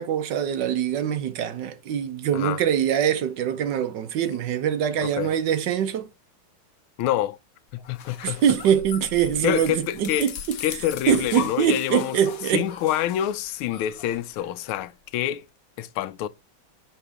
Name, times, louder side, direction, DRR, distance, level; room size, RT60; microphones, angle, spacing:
voice 1, 0.0-6.1 8.2-10.6 11.1-12.7, right 9 dB, 65° right, 1.2 m, -23 dB
voice 2, 5.0-5.3 7.0-7.4 7.7-8.4 9.4-10.3 10.6-12.2 12.5-15.4 15.8-16.3, left 12 dB, 85° left, 1.5 m, -27 dB
sound 1, 7.8-14.8, left 8 dB, 60° left, 1.0 m, -38 dB
6.6 x 4.4 x 3.4 m
omnidirectional pair, 2.3 m